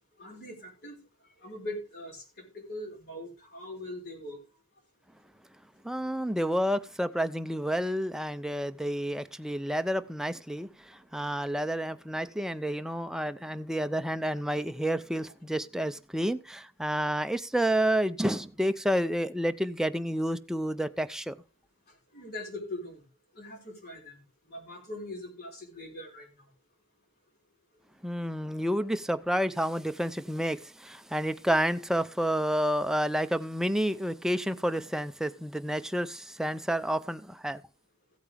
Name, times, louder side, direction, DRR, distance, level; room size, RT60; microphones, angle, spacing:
voice 1, 0.2-1.0 1.4-2.2 2.5-4.4 22.1-23.0 23.3-24.2 24.5-26.3, left 1 dB, 50° left, 4.8 m, -41 dB
voice 2, 5.8-21.4 28.0-37.6, equal, 5° right, 0.6 m, -30 dB
15.5 x 8.6 x 3.5 m
head